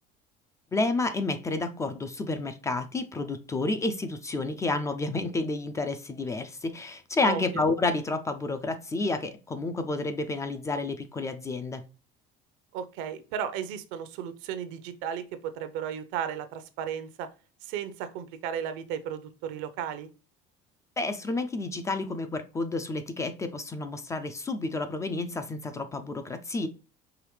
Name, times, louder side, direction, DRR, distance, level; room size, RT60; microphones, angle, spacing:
voice 1, 0.7-11.8 21.0-26.7, left 3 dB, 15° left, 0.3 m, -30 dB
voice 2, 7.2-7.6 12.7-17.3 17.6-20.1, right 8 dB, 75° right, 0.7 m, -34 dB
4.9 x 3.0 x 3.1 m
cardioid pair, 160°, 20 cm